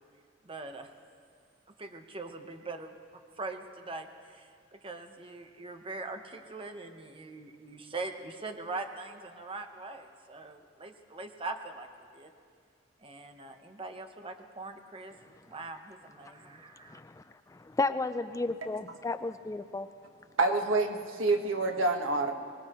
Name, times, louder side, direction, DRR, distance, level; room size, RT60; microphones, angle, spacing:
voice 1, 0.4-0.9 1.8-12.3 13.0-15.1 15.5-17.0, right 3 dB, 30° right, 6 dB, 0.9 m, -42 dB
voice 2, 16.9-17.2 17.5-19.9, left 3 dB, 15° left, 11 dB, 0.3 m, -33 dB
voice 3, 20.4-22.3, right 2 dB, 85° right, 4 dB, 1.4 m, -27 dB
24.0 x 19.5 x 3.0 m, 2.2 s
head